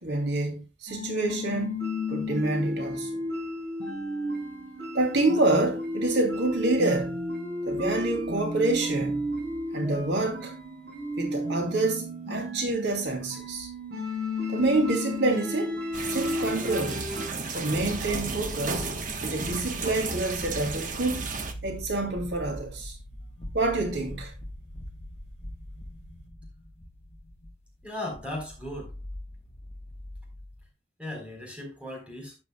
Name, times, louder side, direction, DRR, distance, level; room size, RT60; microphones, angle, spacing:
voice 1, 0.0-3.1 4.2-4.3 4.9-7.2 7.6-9.3 9.7-10.5 11.2-13.7 14.5-15.8 16.1-17.1 17.5-18.9 19.2-21.3 21.6-23.0 23.5-24.3, right 2 dB, 80° right, 2.5 m, -27 dB
sound 1, 0.9-17.3, left 1 dB, 65° right, 5.8 m, -33 dB
sound 2, 15.9-21.5, right 4 dB, 45° right, 1.2 m, -34 dB
sound 3, 17.7-30.7, equal, 35° left, 1.2 m, -42 dB
voice 2, 27.8-29.0 31.0-32.4, left 1 dB, 5° right, 4.0 m, -37 dB
12.0 x 9.3 x 2.3 m
head